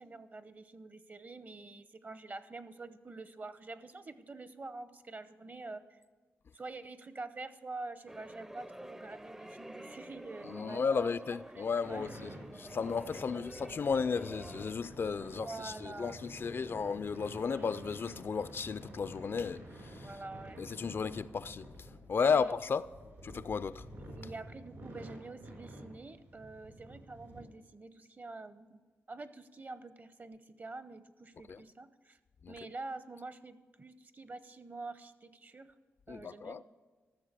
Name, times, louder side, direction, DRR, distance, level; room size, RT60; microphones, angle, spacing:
voice 1, 0.0-6.0 6.5-12.1 13.1-13.4 15.2-16.3 17.5-17.7 20.0-20.7 22.3-22.5 24.0-28.8 29.1-32.2 32.5-35.7 36.1-36.6, right 3 dB, 35° right, 0.8 m, -47 dB
sound 1, 8.1-14.7, right 1 dB, 10° right, 0.5 m, -48 dB
voice 2, 10.4-12.3 12.6-20.1 20.6-21.7 22.1-22.9 23.2-23.8 31.5-31.6 32.4-32.5 36.1-36.6, left 5 dB, 50° left, 0.4 m, -34 dB
sound 2, 11.8-27.4, right 1 dB, 85° right, 4.0 m, -50 dB
14.0 x 6.8 x 6.7 m
cardioid pair, 70°, 5 cm